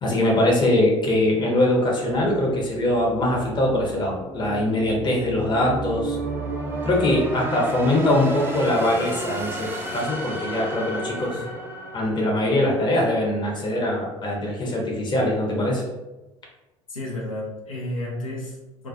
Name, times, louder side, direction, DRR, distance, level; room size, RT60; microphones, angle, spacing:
voice 1, 0.0-6.2 6.8-11.4 11.9-15.8, left 1 dB, 25° left, -2 dB, 0.7 m, -22 dB
sound 1, 2.2-13.1, right 2 dB, 10° right, 0.6 m, -33 dB
voice 2, 16.9-18.9, left 1 dB, 80° left, -5 dB, 0.6 m, -32 dB
2.3 x 2.2 x 2.6 m, 1.1 s
figure-of-eight pair, 65°, 17 cm